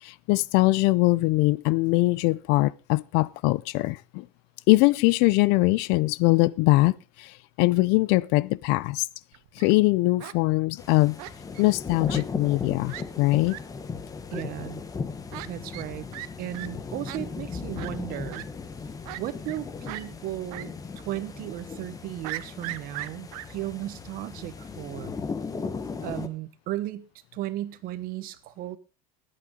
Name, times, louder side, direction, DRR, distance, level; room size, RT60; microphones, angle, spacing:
voice 1, 0.0-4.3 4.7-9.0 9.6-11.2 11.6-13.6, left 21 dB, 60° left, 0.5 m, -22 dB
Fowl, 9.3-9.7 10.2-10.4 11.2-11.7 12.1-12.2 12.5-12.6 12.9-13.0 13.5-13.6 14.3-14.4 15.3-15.5 15.7-16.3 16.5-16.7 17.1-17.2 17.8-17.9 18.3-18.4 19.0-19.6 19.9-20.0 20.5-20.7 21.0-21.1 22.2-23.4, right 18 dB, 75° right, 0.9 m, -38 dB
sound 1, 10.8-26.3, left 5 dB, 20° left, 1.2 m, -37 dB
voice 2, 14.3-14.8 15.4-16.1 16.4-18.5 19.2-20.7 21.0-25.2 26.0-27.1 27.3-28.8, right 14 dB, 50° right, 1.2 m, -35 dB
19.5 x 8.8 x 3.8 m
supercardioid pair, 135°, 19 cm